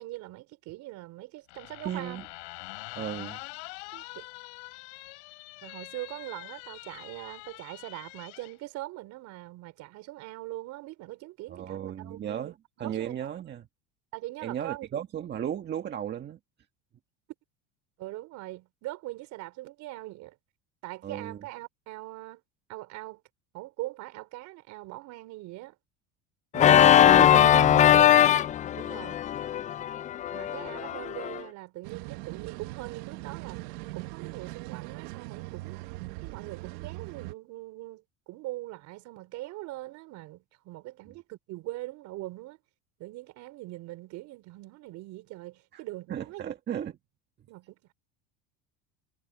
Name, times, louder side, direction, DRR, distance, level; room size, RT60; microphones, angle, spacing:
voice 1, 0.0-2.2 3.9-4.3 5.6-12.5 12.8-13.2 14.1-14.9 18.0-20.3 20.8-22.4 22.7-23.2 23.5-25.7 28.7-29.2 30.3-35.8 36.2-42.6 43.0-46.4 47.5-47.9, right 18 dB, 60° right, 4.4 m, -42 dB
sound 1, 1.5-8.5, left 27 dB, 85° left, 3.3 m, -44 dB
voice 2, 1.8-2.2 2.9-3.4 11.5-13.7 14.4-16.4 21.0-21.4 26.5-28.2 41.1-41.2 45.7-45.8 46.1-47.0, right 9 dB, 35° right, 1.6 m, -35 dB
Organ, 26.5-31.4, left 10 dB, 25° left, 0.3 m, -20 dB
sound 2, 31.8-37.3, right 20 dB, 80° right, 1.4 m, -40 dB
supercardioid pair, 125°, 32 cm